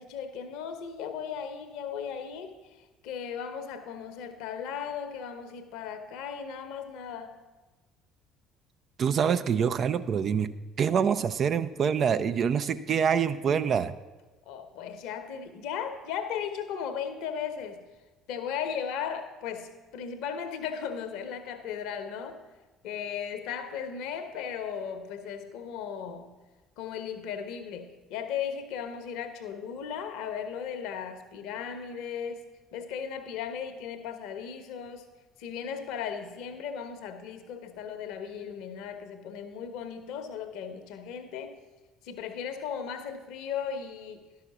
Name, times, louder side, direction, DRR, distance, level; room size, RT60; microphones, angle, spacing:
voice 1, 0.0-2.6 3.0-7.3 14.5-17.8 18.3-22.4 22.8-26.3 26.8-35.1 35.4-41.6 42.0-44.3, left 7 dB, 60° left, 9 dB, 0.9 m, -36 dB
voice 2, 9.0-10.5 10.8-13.9, right 7 dB, 40° right, 12 dB, 0.4 m, -25 dB
11.5 x 5.7 x 6.0 m, 1.2 s
figure-of-eight pair, 55°, 0 cm